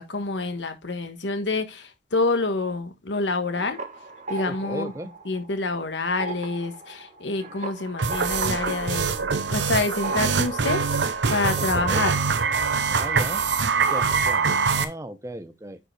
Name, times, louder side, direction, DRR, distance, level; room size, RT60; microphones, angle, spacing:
voice 1, 0.0-3.8 4.3-4.9 5.2-12.1, left 3 dB, 80° left, 1.3 m, -27 dB
sound 1, 3.4-5.8 6.1-13.6 13.9-14.7, right 2 dB, 40° right, 1.4 m, -38 dB
voice 2, 4.4-5.1 11.6-12.1 12.9-13.4 13.7-15.8, right 1 dB, 15° right, 0.7 m, -36 dB
sound 2, 8.0-14.8, right 5 dB, 80° right, 0.8 m, -24 dB
9.7 x 4.9 x 3.3 m
head